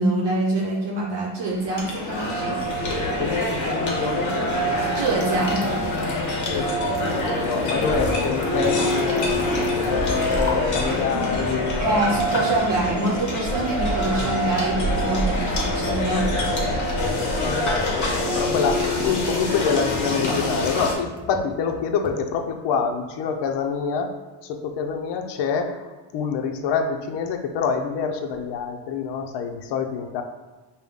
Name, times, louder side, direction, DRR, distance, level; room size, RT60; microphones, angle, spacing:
voice 1, 0.0-2.6 4.9-5.6 11.1-11.2 11.8-16.3, right 2 dB, 55° right, -4 dB, 0.8 m, -25 dB
sound 1, 1.5-20.9, left 1 dB, 40° left, 0.9 m, -25 dB
voice 2, 3.2-4.3 6.5-7.1 7.4-12.0 16.5-16.8 17.4-24.1 24.4-30.2, left 6 dB, 60° left, 4 dB, 0.6 m, -26 dB
sound 2, 5.5-5.9 6.2-6.6 6.9-7.3 7.6-8.0 8.3-8.7 9.0-22.1, left 2 dB, 10° left, 0.3 m, -41 dB
5.2 x 2.2 x 3.6 m, 1.2 s
cardioid pair, 130°, 48 cm